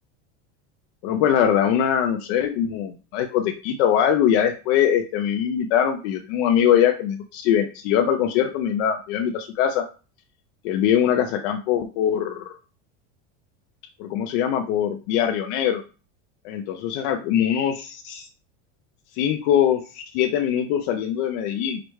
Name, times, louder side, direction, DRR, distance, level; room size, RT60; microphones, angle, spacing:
voice 1, 1.0-9.8 10.6-12.5 14.0-15.8 16.4-18.3 19.2-21.8, left 9 dB, 65° left, 5 dB, 0.6 m, -22 dB
5.0 x 2.1 x 4.6 m, 0.35 s
supercardioid pair, 145°, 37 cm